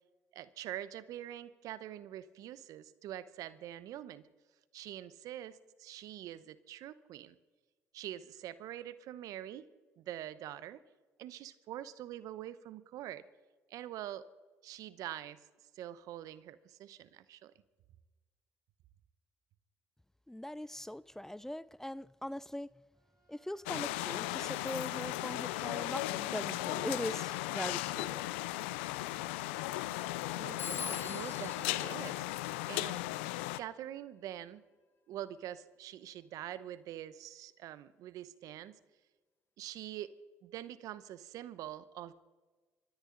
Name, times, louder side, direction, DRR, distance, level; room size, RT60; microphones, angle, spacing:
voice 1, 0.3-4.2 4.7-7.4 7.9-9.7 10.0-10.8 11.2-13.2 13.7-14.2 14.6-15.5 15.7-17.5 30.3-33.0 33.6-34.6 35.1-38.8 39.6-40.1 40.4-42.1, right 12 dB, 70° right, 0.8 m, -45 dB
voice 2, 20.3-22.7 23.3-28.3, left 1 dB, 5° left, 0.5 m, -41 dB
Bowed string instrument, 22.9-28.3, right 5 dB, 40° right, 6.3 m, -69 dB
sound 1, 23.7-33.6, left 17 dB, 90° left, 0.4 m, -36 dB
Telephone, 30.6-33.1, left 6 dB, 35° left, 0.8 m, -44 dB
26.5 x 14.0 x 3.9 m
hypercardioid pair, 55°, 6 cm